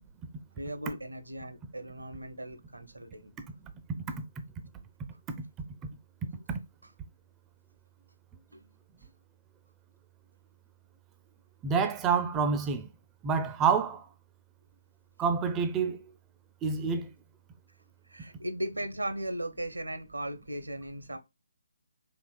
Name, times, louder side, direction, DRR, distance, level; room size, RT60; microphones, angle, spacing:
voice 1, 0.6-3.3 8.5-8.7 18.1-21.2, right 1 dB, 80° right, 0.7 m, -37 dB
voice 2, 11.6-12.9 13.2-14.0 15.2-16.0 16.6-17.1, right 6 dB, 15° right, 0.4 m, -27 dB
4.5 x 2.9 x 2.2 m
figure-of-eight pair, 145°, 0 cm